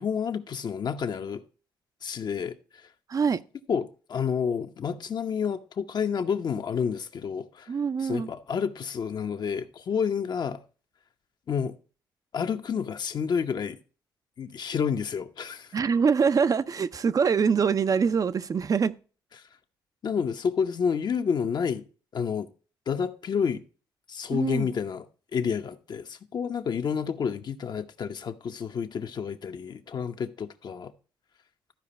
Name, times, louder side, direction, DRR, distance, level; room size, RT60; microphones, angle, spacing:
voice 1, 0.0-1.4 2.0-2.6 3.7-7.7 8.0-10.6 11.5-11.7 12.3-13.8 14.4-15.8 20.0-21.8 22.1-22.5 22.9-23.6 24.1-25.1 25.3-30.9, left 6 dB, 55° left, 0.9 m, -29 dB
voice 2, 3.1-3.4 7.7-8.3 15.7-19.0 24.3-24.7, right 6 dB, 45° right, 0.6 m, -24 dB
13.0 x 5.0 x 4.3 m
cardioid pair, 70°, 9 cm